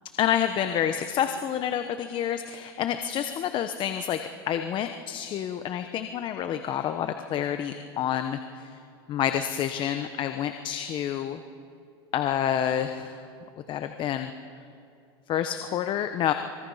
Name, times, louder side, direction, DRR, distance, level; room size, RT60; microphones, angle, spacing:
voice 1, 0.2-4.2 4.5-8.7 9.1-11.4 12.1-13.2 13.7-14.3 15.3-16.3, left 10 dB, 40° left, 8 dB, 1.0 m, -28 dB
25.0 x 22.5 x 5.7 m, 2.5 s
supercardioid pair, 120°, 13 cm